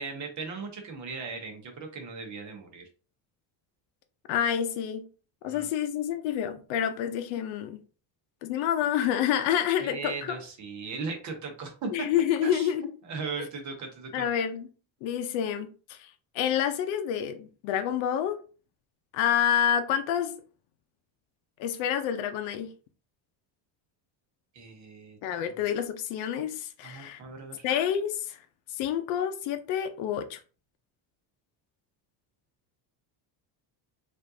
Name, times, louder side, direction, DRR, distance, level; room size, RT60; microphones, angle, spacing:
voice 1, 0.0-2.9 5.4-5.7 9.8-12.1 12.4-12.7 13.1-14.2 24.5-25.2 26.8-27.6, right 4 dB, 40° right, 1.0 m, -37 dB
voice 2, 4.3-5.0 5.4-7.8 8.4-10.4 11.9-12.8 14.1-14.7 15.0-18.4 19.1-20.4 21.6-22.7 25.2-27.2 27.6-28.4 28.7-30.4, left 9 dB, 90° left, 0.7 m, -28 dB
5.1 x 2.6 x 2.7 m
cardioid pair, 175°, 46 cm